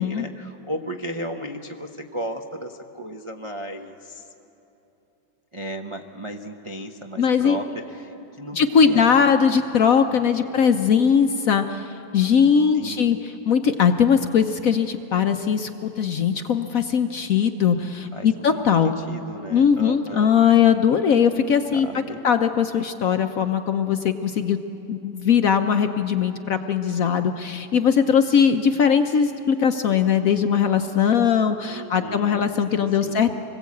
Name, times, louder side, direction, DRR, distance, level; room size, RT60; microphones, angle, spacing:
voice 1, 0.0-4.3 5.5-9.3 10.1-10.6 12.7-13.1 18.1-18.6 19.0-20.3 21.7-22.3 31.7-33.2, right 1 dB, 40° right, 3 dB, 0.4 m, -35 dB
voice 2, 7.2-7.6 8.5-13.2 13.5-18.9 19.5-21.9 22.2-24.6 24.9-33.3, left 7 dB, 60° left, 7 dB, 0.9 m, -20 dB
25.5 x 20.0 x 8.4 m, 3.0 s
omnidirectional pair, 2.1 m